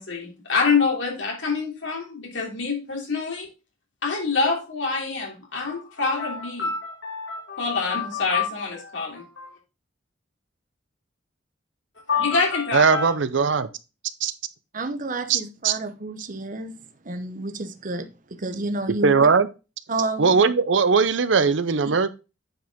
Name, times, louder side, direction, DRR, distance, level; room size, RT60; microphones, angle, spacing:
voice 1, 0.0-3.5 4.0-9.5 12.1-13.1, left 4 dB, 75° left, 3.0 m, -26 dB
voice 2, 12.7-13.7 14.2-14.3 15.3-15.8 19.0-19.5 20.2-22.1, right 5 dB, 75° right, 0.7 m, -19 dB
voice 3, 14.7-19.3 19.9-20.4, right 2 dB, 45° right, 0.9 m, -30 dB
9.0 x 5.0 x 3.6 m
head